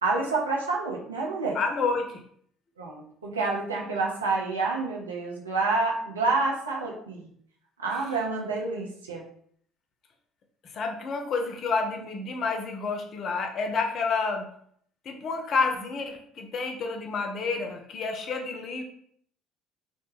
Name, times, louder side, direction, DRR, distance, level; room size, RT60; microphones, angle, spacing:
voice 1, 0.0-1.6 2.8-7.3 7.8-9.2, right 3 dB, 90° right, -2 dB, 0.4 m, -28 dB
voice 2, 1.5-2.2 10.7-14.4 15.1-18.8, left 4 dB, 50° left, 3 dB, 0.5 m, -29 dB
2.1 x 2.0 x 3.1 m, 0.64 s
hypercardioid pair, 60°, 0 cm